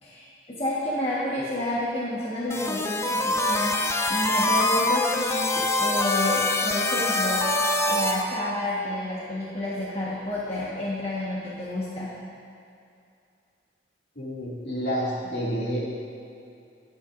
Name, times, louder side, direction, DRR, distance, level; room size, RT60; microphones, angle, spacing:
voice 1, 0.0-7.5 7.9-12.1, left 1 dB, 30° left, -8 dB, 1.4 m, -30 dB
sound 1, 2.5-8.2, left 2 dB, 15° left, 0.4 m, -24 dB
voice 2, 14.2-15.8, equal, 60° left, -6 dB, 2.5 m, -29 dB
20.5 x 8.6 x 2.6 m, 2.6 s
head